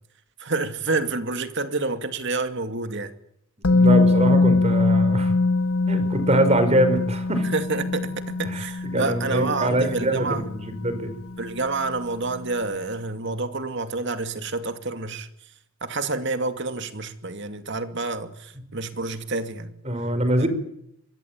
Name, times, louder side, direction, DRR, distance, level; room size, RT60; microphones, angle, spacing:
voice 1, 0.4-3.1 7.5-10.4 11.4-15.3 15.8-19.7 20.4-20.5, right 3 dB, 55° right, 2.4 m, -28 dB
Musical instrument, 3.6-11.5 11.8-12.0, left 3 dB, 85° left, 1.4 m, -23 dB
voice 2, 3.6-5.3 5.9-7.5 8.4-8.7 8.9-11.1 19.8-20.5, right 1 dB, 30° right, 5.2 m, -23 dB
26.0 x 23.0 x 9.0 m
head